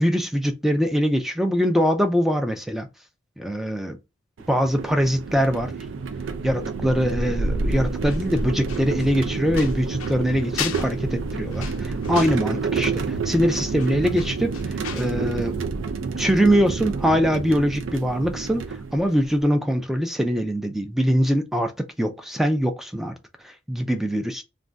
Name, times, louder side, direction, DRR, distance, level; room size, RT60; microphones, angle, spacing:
voice 1, 0.0-2.9 3.4-4.0 4.5-5.7 6.4-15.5 16.2-23.1 23.4-24.4, equal, ahead, 0.3 m, -23 dB
sound 1, 4.4-19.4, right 4 dB, 75° right, 0.4 m, -28 dB
sound 2, 8.0-15.2 15.5-15.6, left 8 dB, 90° left, 0.4 m, -37 dB
2.5 x 2.2 x 3.3 m
head